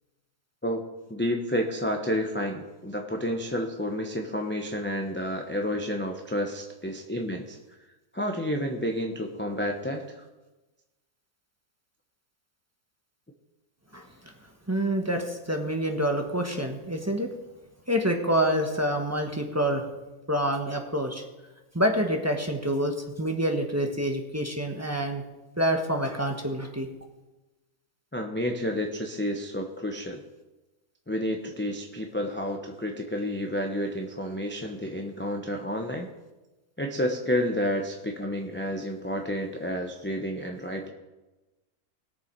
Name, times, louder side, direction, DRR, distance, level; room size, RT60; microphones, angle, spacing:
voice 1, 0.6-7.6 8.1-10.2 28.1-30.2 31.1-36.1 36.8-40.9, equal, 10° left, 1 dB, 0.7 m, -30 dB
voice 2, 14.7-17.3 17.9-19.8 20.3-21.2 21.7-25.2 25.6-26.9, equal, 10° right, 2 dB, 1.2 m, -27 dB
21.0 x 6.9 x 4.6 m, 1.1 s
omnidirectional pair, 1.6 m